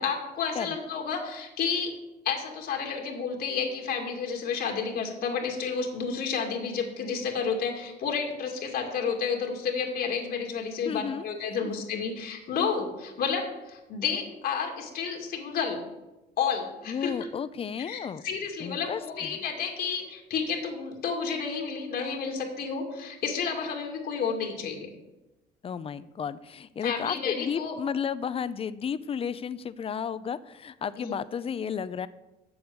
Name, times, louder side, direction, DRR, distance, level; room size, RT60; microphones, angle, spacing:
voice 1, 0.0-2.0 2.2-15.8 16.4-17.1 17.9-24.9 26.8-27.8 31.0-31.1, left 6 dB, 65° left, 2 dB, 2.3 m, -31 dB
voice 2, 10.8-11.2 11.6-11.7 16.9-18.2 18.6-19.4 25.6-32.1, left 7 dB, 35° left, 16 dB, 0.6 m, -33 dB
7.9 x 7.1 x 8.3 m, 1.0 s
cardioid pair, 110°, 17 cm